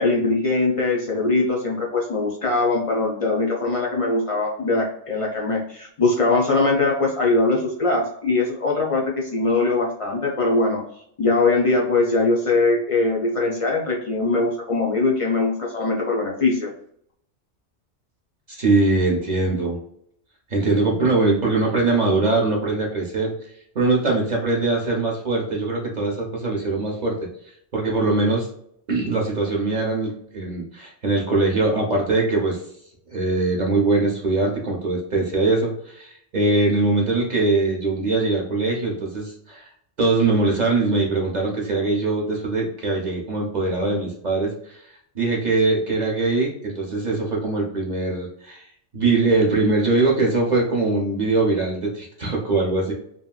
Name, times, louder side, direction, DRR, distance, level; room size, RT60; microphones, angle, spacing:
voice 1, 0.0-10.8 11.2-16.7, left 3 dB, 55° left, -2 dB, 0.3 m, -21 dB
voice 2, 18.5-19.8 20.5-23.5 23.7-27.2 27.7-28.5 28.9-32.6 33.1-39.6 40.0-44.8 45.1-48.7 48.9-52.9, right 3 dB, 45° right, -1 dB, 0.6 m, -22 dB
2.9 x 2.6 x 2.3 m, 0.70 s
omnidirectional pair, 1.2 m